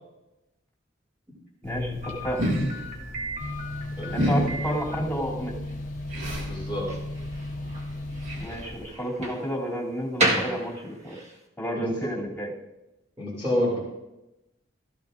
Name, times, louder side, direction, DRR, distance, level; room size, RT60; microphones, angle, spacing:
voice 1, 1.6-2.4 4.1-5.5 8.4-11.2 11.6-12.5, equal, 10° left, -5 dB, 2.9 m, -31 dB
sound 1, 1.6-8.9, equal, 80° right, 2.2 m, -33 dB
Slam, 2.0-11.4, right 1 dB, 35° right, 1.5 m, -33 dB
sound 2, 3.4-8.5, left 1 dB, 45° left, 0.9 m, -35 dB
voice 2, 4.0-4.4 6.4-6.9 11.8-11.9 13.2-13.8, left 1 dB, 15° right, -7 dB, 2.8 m, -28 dB
16.0 x 14.0 x 2.6 m, 0.97 s
head